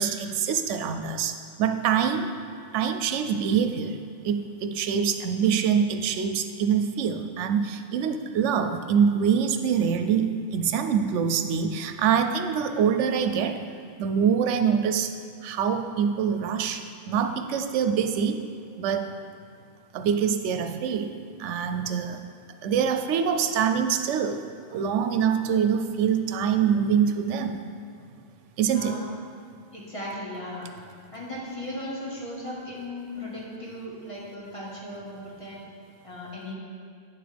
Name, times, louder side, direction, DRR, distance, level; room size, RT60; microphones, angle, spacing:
voice 1, 0.0-2.3 2.7-13.7 14.0-15.1 15.4-18.4 18.8-19.1 19.9-21.1 21.4-22.2 22.6-24.4 24.7-27.6 28.6-29.0, right 7 dB, 80° right, 7 dB, 0.9 m, -25 dB
voice 2, 28.6-29.1 29.7-30.7 31.1-35.6 36.0-36.5, left 1 dB, 25° left, -6 dB, 1.7 m, -37 dB
9.0 x 7.5 x 3.4 m, 2.4 s
omnidirectional pair, 1.2 m